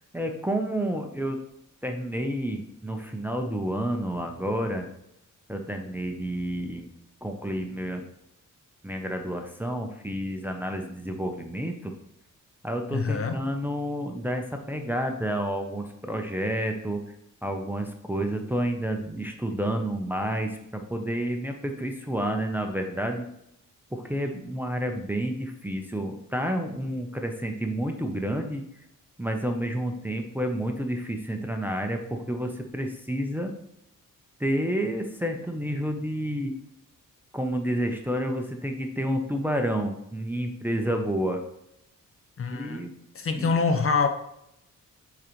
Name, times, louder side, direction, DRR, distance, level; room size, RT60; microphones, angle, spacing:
voice 1, 0.1-1.4 1.8-4.9 5.5-6.9 7.2-8.1 8.8-11.9 12.6-17.0 17.4-23.3 23.9-28.6 29.2-33.5 34.4-36.5 37.3-41.4 42.5-42.9 43.3-43.5, right 1 dB, 5° right, 3 dB, 0.5 m, -30 dB
voice 2, 12.9-13.4 42.4-42.8 43.1-44.1, left 4 dB, 45° left, 7 dB, 0.6 m, -25 dB
8.2 x 3.9 x 3.0 m, 0.80 s
wide cardioid pair, 150°, 33 cm